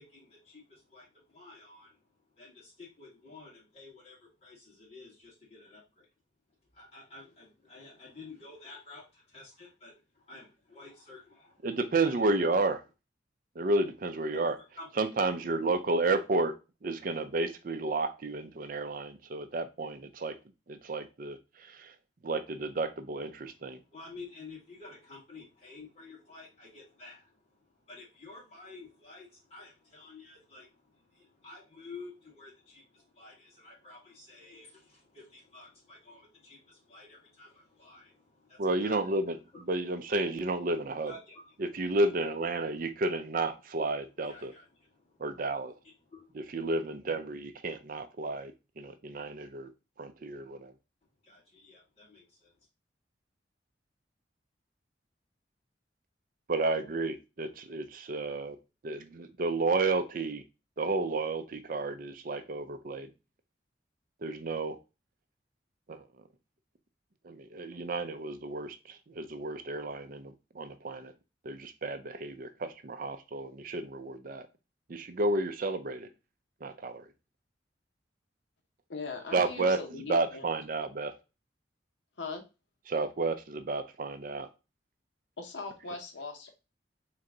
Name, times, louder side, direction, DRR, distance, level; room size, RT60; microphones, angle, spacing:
voice 1, 0.0-6.1 6.7-11.7 12.0-12.2 14.3-15.3 23.5-39.6 41.0-41.6 44.2-45.2 45.8-46.3 51.2-52.5, left 3 dB, 35° left, -5 dB, 2.3 m, -51 dB
voice 2, 11.6-12.8 13.6-14.5 15.0-16.5 16.8-20.4 20.7-21.4 21.7-21.9 22.2-23.8 38.6-39.4 39.7-41.1 41.6-44.5 45.2-45.7 46.5-49.7 50.0-50.7 56.5-58.6 58.8-60.4 60.8-63.1 64.2-64.8 65.9-66.0 67.2-71.1 71.4-74.5 74.9-76.1 76.6-77.0 79.3-79.8 80.1-81.1 82.9-84.5, right 2 dB, 50° right, 8 dB, 0.5 m, -31 dB
voice 3, 78.9-80.5 82.2-82.4 85.4-86.5, left 3 dB, 80° left, 4 dB, 0.8 m, -40 dB
3.7 x 3.3 x 3.8 m, 0.28 s
head